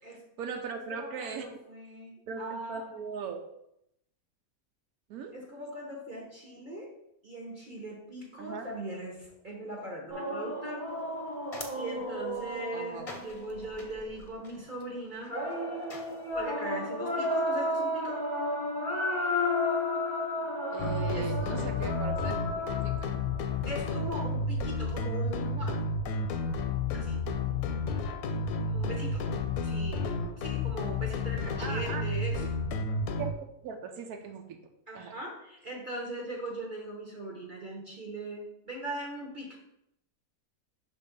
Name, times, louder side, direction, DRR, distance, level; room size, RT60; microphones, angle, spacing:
voice 1, 0.1-1.5 2.3-3.4 5.1-5.3 8.4-8.7 12.7-13.1 20.7-23.1 31.6-32.0 32.4-32.5 33.2-33.3 33.6-34.6 34.9-35.2, right 5 dB, 90° right, 4 dB, 1.1 m, -39 dB
voice 2, 0.9-2.9 5.3-6.9 7.2-10.9 11.7-15.4 15.7-15.9 16.3-18.2 21.1-21.3 23.7-25.8 26.9-27.2 28.6-29.3 29.5-32.4 34.9-39.6, right 1 dB, 40° right, -2 dB, 1.0 m, -40 dB
sound 1, 10.1-13.9 15.3-23.4, left 1 dB, 20° right, 1.2 m, -33 dB
sound 2, 10.9-16.5, left 3 dB, 35° left, 0.7 m, -49 dB
sound 3, 20.8-33.3, left 3 dB, 85° left, 1.1 m, -31 dB
5.9 x 3.6 x 5.1 m, 0.80 s
omnidirectional pair, 1.5 m